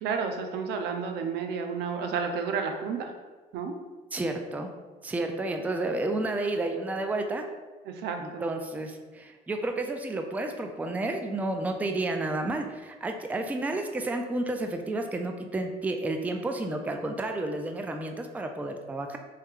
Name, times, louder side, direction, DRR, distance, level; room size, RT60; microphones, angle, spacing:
voice 1, 0.0-3.1 3.5-3.7 7.9-8.5, right 5 dB, 80° right, 5 dB, 0.5 m, -31 dB
voice 2, 4.1-4.7 5.0-7.5 8.2-19.2, right 2 dB, 10° right, 5 dB, 0.3 m, -31 dB
3.2 x 3.2 x 3.6 m, 1.3 s
cardioid pair, 110°, 17 cm